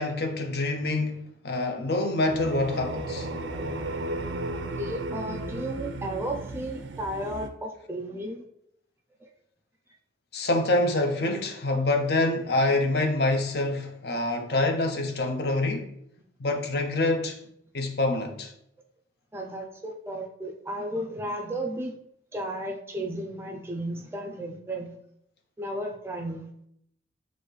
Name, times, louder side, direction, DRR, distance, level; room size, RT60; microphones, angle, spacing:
voice 1, 0.0-3.3 10.3-15.9 16.4-17.4 17.7-18.5, left 2 dB, 60° left, 0.6 m, -26 dB
sound 1, 2.3-7.5, right 1 dB, 85° right, 0.5 m, -34 dB
voice 2, 4.8-8.4 19.3-22.0 22.3-25.0 25.6-26.5, right 1 dB, 15° right, 0.4 m, -34 dB
6.3 x 2.6 x 3.2 m
head